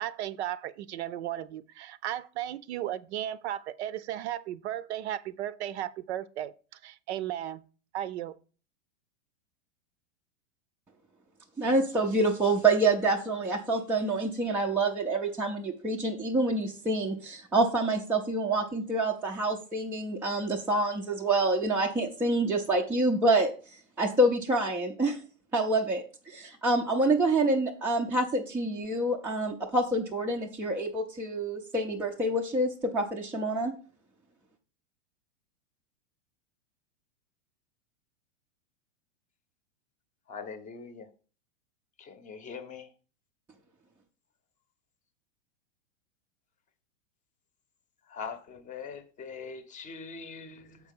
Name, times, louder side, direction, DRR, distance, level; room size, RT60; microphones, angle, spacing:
voice 1, 0.0-6.5 6.8-7.6 7.9-8.3, right 12 dB, 60° right, 0.6 m, -35 dB
voice 2, 11.6-23.5 24.0-25.2 25.5-33.7, right 2 dB, 5° right, 0.4 m, -27 dB
voice 3, 40.3-41.1 42.0-42.9 48.1-50.8, left 5 dB, 20° left, 0.8 m, -42 dB
7.3 x 4.7 x 5.2 m
supercardioid pair, 140°, 38 cm